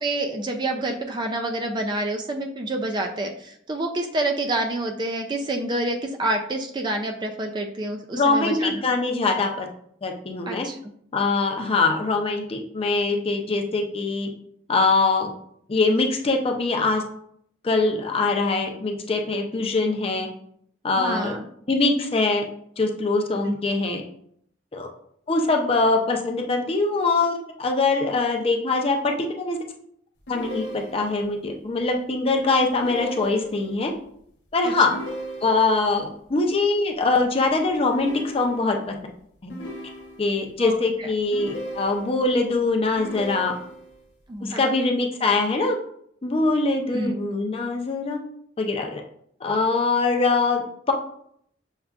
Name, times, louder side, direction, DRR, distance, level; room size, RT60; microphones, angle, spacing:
voice 1, 0.0-8.8 10.5-10.8 21.0-21.5 23.4-23.6 34.6-34.7 40.6-41.1 44.3-44.7 46.9-47.1, right 1 dB, 25° right, 4 dB, 0.3 m, -28 dB
voice 2, 8.1-9.7 10.0-10.7 11.1-14.3 14.7-15.3 15.7-17.0 17.6-20.3 20.8-21.4 21.7-22.4 22.8-24.0 24.7-24.9 25.3-29.6 30.3-33.9 34.5-34.9 35.4-38.9 39.4-39.5 40.2-43.5 44.4-45.8 46.2-48.2 48.6-49.0 49.4-50.9, left 3 dB, 30° left, 3 dB, 0.5 m, -23 dB
sound 1, 30.3-31.3 32.7-33.8 34.8-35.9 37.9-38.9 39.5-40.5 41.3-42.3 43.0-44.0, right 1 dB, 75° left, 1.0 m, -36 dB
6.3 x 2.3 x 2.3 m, 0.67 s
head